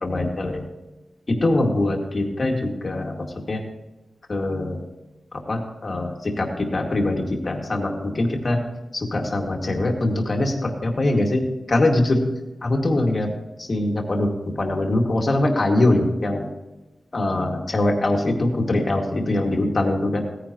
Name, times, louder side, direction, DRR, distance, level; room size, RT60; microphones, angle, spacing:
voice 1, 0.0-0.6 1.3-3.6 4.3-4.8 5.5-8.6 8.9-11.4 11.7-12.2 12.6-13.3 13.6-16.5 17.1-20.2, left 2 dB, 40° left, 1 dB, 2.2 m, -22 dB
17.0 x 9.9 x 3.0 m, 1.1 s
wide cardioid pair, 110°, 0 cm